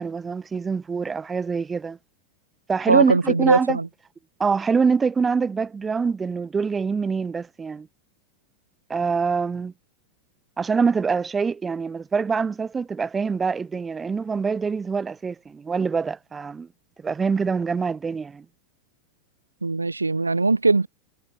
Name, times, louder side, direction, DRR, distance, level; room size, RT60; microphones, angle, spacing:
voice 1, 0.0-2.0 2.7-3.8 4.4-7.9 8.9-9.7 10.6-16.7 17.0-18.4, right 5 dB, 15° right, 5.8 m, -25 dB
voice 2, 2.9-3.9 19.6-20.9, right 3 dB, 80° right, 0.9 m, -20 dB
figure-of-eight pair, 90°, 0 cm